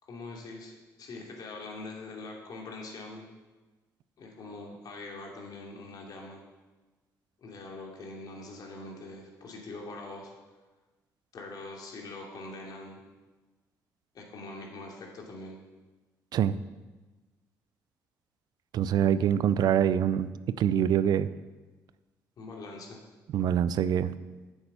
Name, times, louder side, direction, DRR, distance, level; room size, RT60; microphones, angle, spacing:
voice 1, 0.0-3.3 4.2-6.4 7.4-10.3 11.3-13.0 14.1-15.6 22.4-23.0, left 2 dB, 60° left, -1 dB, 2.8 m, -43 dB
voice 2, 18.7-20.3 20.6-21.3 23.3-24.1, right 9 dB, 65° right, 15 dB, 0.5 m, -24 dB
9.6 x 7.1 x 6.7 m, 1.2 s
supercardioid pair, 60°, 7 cm